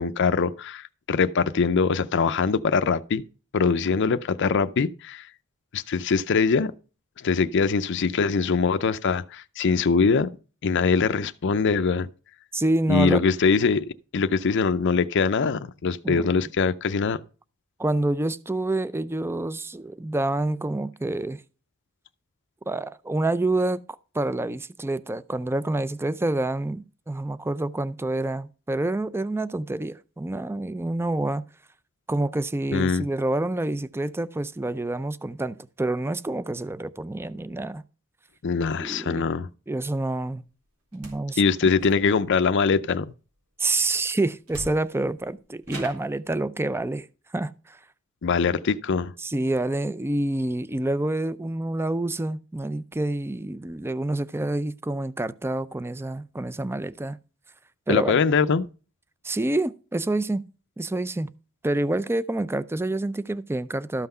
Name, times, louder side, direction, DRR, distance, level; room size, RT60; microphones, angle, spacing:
voice 1, 0.0-3.2 3.5-5.3 5.7-6.7 7.2-10.3 10.6-12.1 12.9-13.9 14.1-17.2 32.7-33.0 38.4-39.5 41.4-43.1 48.2-49.1 57.9-58.7, left 5 dB, 55° left, 0.5 m, -22 dB
voice 2, 12.5-13.2 16.0-16.3 17.8-21.4 22.7-23.8 24.1-31.5 32.1-37.8 38.8-39.3 39.7-40.4 40.9-41.4 43.6-47.1 47.3-47.8 49.2-57.2 57.9-58.2 59.2-60.4 60.8-61.3 61.6-64.1, right 2 dB, 10° right, 0.4 m, -27 dB
sound 1, 40.9-41.3 41.7-42.4 43.9-44.0 44.5-45.1 45.6-46.2, right 2 dB, 85° right, 3.6 m, -41 dB
13.0 x 5.8 x 5.5 m
head